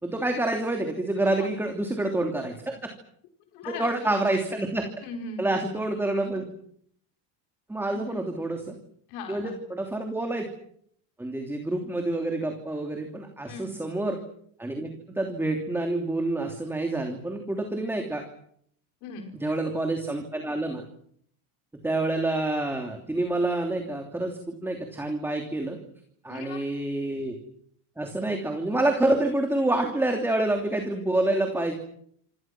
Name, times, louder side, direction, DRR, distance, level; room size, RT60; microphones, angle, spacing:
voice 1, 0.0-2.8 3.7-4.9 5.4-6.4 7.7-8.7 9.3-10.5 11.2-14.2 14.6-18.2 19.3-20.8 21.8-25.8 26.2-27.4 28.0-31.7, right 2 dB, 5° right, 3 dB, 3.0 m, -27 dB
voice 2, 3.5-3.9 5.0-5.9 8.1-8.3 9.1-9.6 13.5-13.7 19.0-19.3 26.3-26.7, left 3 dB, 65° left, 4 dB, 5.0 m, -39 dB
28.0 x 26.5 x 6.1 m, 0.67 s
cardioid pair, 165°, 41 cm